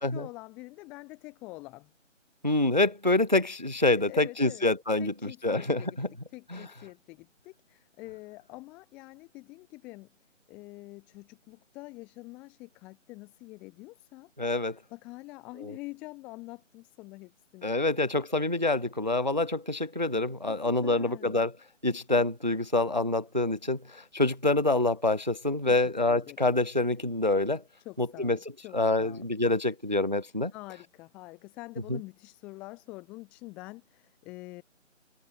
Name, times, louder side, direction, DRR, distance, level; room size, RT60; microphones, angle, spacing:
voice 1, 0.0-1.9 3.9-4.7 5.0-6.0 6.3-10.1 10.5-14.3 14.7-17.7 20.5-21.4 21.9-22.3 25.6-26.4 27.8-29.3 30.5-34.6, left 22 dB, 5° left, 1.8 m, -46 dB
voice 2, 2.4-5.1 5.4-6.1 6.5-6.6 14.4-14.8 15.6-15.7 17.6-21.5 21.8-27.6 28.0-28.4 28.7-30.5 31.9-32.0, left 2 dB, 40° right, 0.4 m, -26 dB
figure-of-eight pair, 175°, 39 cm